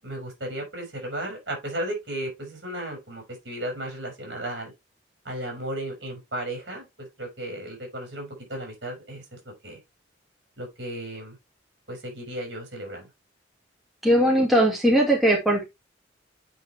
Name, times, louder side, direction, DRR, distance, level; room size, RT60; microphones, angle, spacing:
voice 1, 0.0-4.7 5.2-9.8 10.6-11.4 11.9-13.1, right 1 dB, 65° right, 5.5 m, -35 dB
voice 2, 14.0-15.6, right 1 dB, ahead, 2.3 m, -19 dB
9.1 x 5.0 x 3.4 m
head